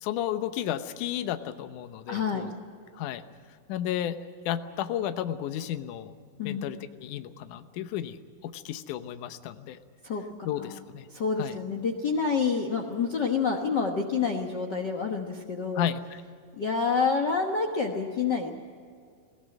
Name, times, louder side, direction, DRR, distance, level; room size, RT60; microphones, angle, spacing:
voice 1, 0.0-2.5 2.9-3.2 3.7-4.2 4.5-6.1 6.4-9.8 10.4-11.1 11.4-11.6 15.8-16.2, left 11 dB, 70° left, 10 dB, 2.2 m, -33 dB
voice 2, 2.1-2.5 6.4-6.6 10.0-10.2 10.6-10.8 11.1-15.9 16.6-18.5, left 5 dB, 85° left, 4 dB, 0.9 m, -28 dB
21.5 x 17.0 x 9.1 m, 2.2 s
omnidirectional pair, 4.1 m